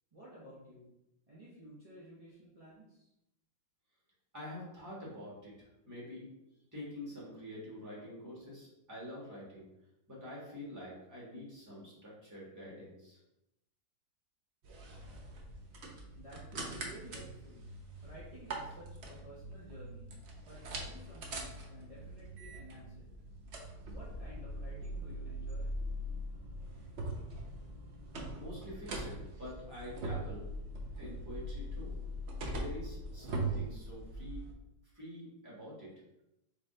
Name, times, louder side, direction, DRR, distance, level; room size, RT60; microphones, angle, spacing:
voice 1, 0.1-0.9 1.3-3.1 16.1-17.7 18.0-20.1 20.5-23.1 23.9-25.7, right 1 dB, 30° right, -9 dB, 0.6 m, -53 dB
voice 2, 4.3-6.3 6.7-9.6 10.1-13.2 28.4-30.5 31.0-32.0 32.5-34.4 34.9-35.9, left 1 dB, 10° right, -7 dB, 1.5 m, -47 dB
sound 1, 14.6-34.5, right 1 dB, 75° right, 0.6 m, -42 dB
4.1 x 3.3 x 3.7 m, 0.88 s
omnidirectional pair, 2.1 m